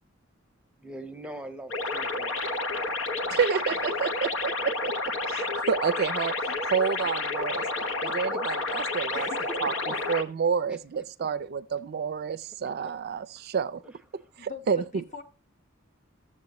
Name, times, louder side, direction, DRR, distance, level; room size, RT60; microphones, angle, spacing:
voice 1, 0.8-2.4 7.0-7.1 7.8-8.4 9.2-9.3 9.6-9.9 10.7-11.3 13.8-14.3, right 1 dB, 5° right, 0.8 m, -44 dB
sound 1, 1.7-10.2, left 3 dB, 90° left, 1.0 m, -30 dB
voice 2, 3.3-4.9 5.3-6.4 6.7-7.7 8.0-9.3 9.6-9.7 10.1-13.8 14.4-15.0, right 6 dB, 55° right, 0.4 m, -29 dB
voice 3, 9.1-9.8 14.4-15.2, left 3 dB, 40° left, 1.1 m, -42 dB
13.0 x 7.5 x 3.0 m
head